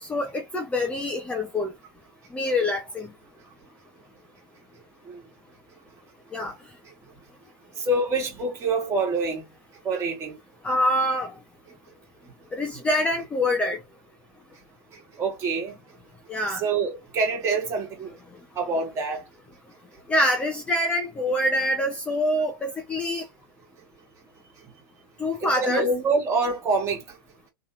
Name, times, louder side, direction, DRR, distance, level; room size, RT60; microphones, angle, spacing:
voice 1, 0.0-1.7 2.3-3.1 6.3-6.5 10.6-11.3 12.5-13.8 16.3-16.6 20.1-23.2 25.2-25.9, left 1 dB, 10° left, 0.7 m, -25 dB
voice 2, 7.8-9.4 9.8-10.4 15.2-15.8 16.6-18.1 18.6-19.2 25.5-27.0, right 3 dB, 25° right, 2.0 m, -26 dB
3.2 x 3.1 x 2.9 m
supercardioid pair, 145°, 12 cm